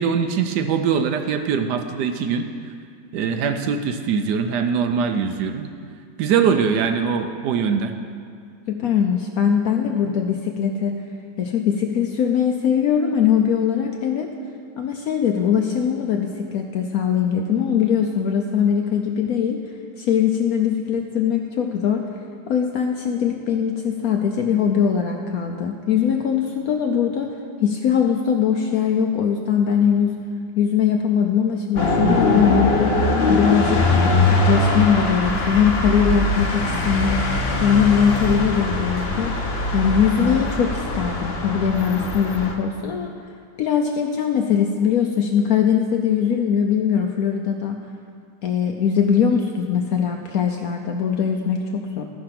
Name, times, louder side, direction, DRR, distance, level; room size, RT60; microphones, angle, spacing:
voice 1, 0.0-2.5 3.1-5.7 6.2-7.9, right 6 dB, 70° right, 6 dB, 1.1 m, -22 dB
voice 2, 8.7-11.0 11.4-14.3 14.8-19.6 20.0-22.0 22.5-27.3 27.6-30.1 30.6-32.7 33.3-37.2 37.6-39.4 39.7-43.1 43.6-47.8 48.4-52.1, left 7 dB, 70° left, 3 dB, 0.8 m, -21 dB
sound 1, 31.8-42.5, left 2 dB, 45° left, 1.0 m, -21 dB
13.0 x 5.2 x 5.8 m, 2.3 s
omnidirectional pair, 2.0 m